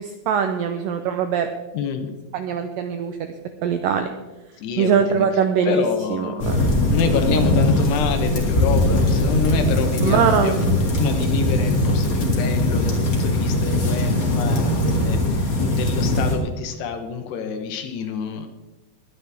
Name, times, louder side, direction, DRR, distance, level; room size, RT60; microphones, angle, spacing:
voice 1, 0.0-1.5 2.3-3.3 3.6-4.1 4.8-5.8 6.1-6.8 10.0-10.7, right 7 dB, 85° right, 7 dB, 1.9 m, -22 dB
voice 2, 1.7-2.1 4.6-5.3 5.6-6.6 6.9-10.7 10.9-18.5, left 7 dB, 80° left, 6 dB, 3.1 m, -27 dB
sound 1, 6.4-16.3, left 1 dB, 40° left, 1.3 m, -20 dB
20.5 x 9.8 x 3.5 m, 1.1 s
omnidirectional pair, 4.8 m